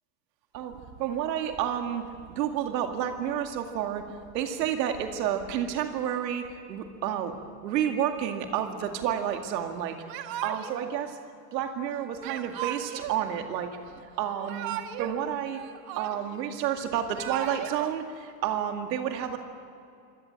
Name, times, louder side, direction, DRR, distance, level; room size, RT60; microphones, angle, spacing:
voice 1, 0.5-4.1 4.3-7.3 7.6-11.2 11.5-13.7 14.2-15.6 16.0-19.4, right 9 dB, 85° right, 5 dB, 2.3 m, -30 dB
Yell / Crying sobbing, 10.1-10.9 12.2-13.2 14.2-15.2 15.5-16.4 17.0-17.9, right 11 dB, 45° right, 1.7 m, -36 dB
25.5 x 17.5 x 9.0 m, 2.5 s
supercardioid pair, 135°, 49 cm